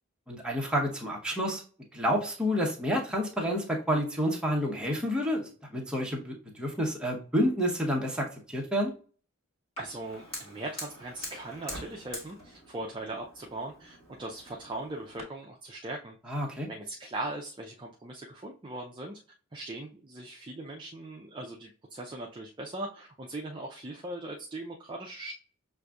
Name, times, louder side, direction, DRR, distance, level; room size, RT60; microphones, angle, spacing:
voice 1, 0.3-1.6 1.9-8.9 16.3-16.7, equal, 5° right, -1 dB, 0.8 m, -29 dB
Fire, 9.8-15.2, equal, 25° left, 1.6 m, -45 dB
voice 2, 9.8-16.3 16.7-19.2 19.5-25.3, right 2 dB, 20° right, -1 dB, 0.4 m, -39 dB
6.3 x 2.6 x 2.3 m, 0.40 s
head